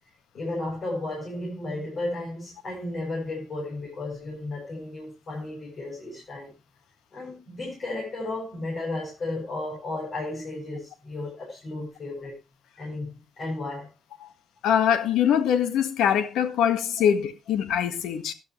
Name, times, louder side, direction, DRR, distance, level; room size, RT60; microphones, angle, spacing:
voice 1, 0.3-6.5 7.1-12.3 12.8-13.9, left 2 dB, 45° left, 7.6 m, -34 dB
voice 2, 14.6-18.3, left 9 dB, 85° left, 1.6 m, -23 dB
12.5 x 12.0 x 3.1 m
cardioid pair, 90°, 0 cm